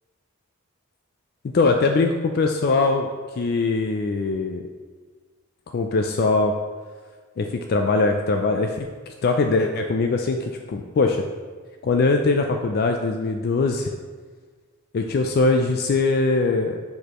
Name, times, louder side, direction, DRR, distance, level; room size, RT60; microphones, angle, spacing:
voice 1, 1.5-3.1 3.4-4.6 5.7-6.5 7.4-11.2 11.8-13.9 14.9-16.8, left 3 dB, 50° left, 4 dB, 0.3 m, -21 dB
6.2 x 5.1 x 3.0 m, 1.5 s
head